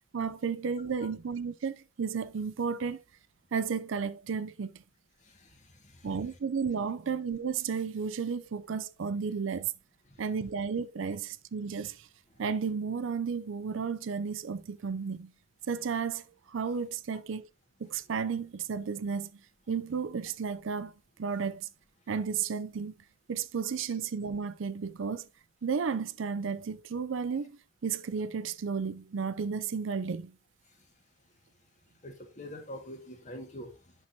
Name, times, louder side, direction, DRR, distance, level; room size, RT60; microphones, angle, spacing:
voice 1, 0.1-3.0 3.5-4.8 6.0-9.7 10.2-12.1 12.4-15.3 15.7-17.5 17.8-19.4 19.7-20.9 21.2-21.7 22.1-22.9 23.3-25.3 25.6-30.4, right 6 dB, 70° right, 0.5 m, -33 dB
voice 2, 5.2-6.1 10.1-10.2 12.3-12.4 30.7-30.9 32.0-33.9, left 1 dB, 35° left, 1.7 m, -46 dB
8.7 x 6.0 x 2.8 m
head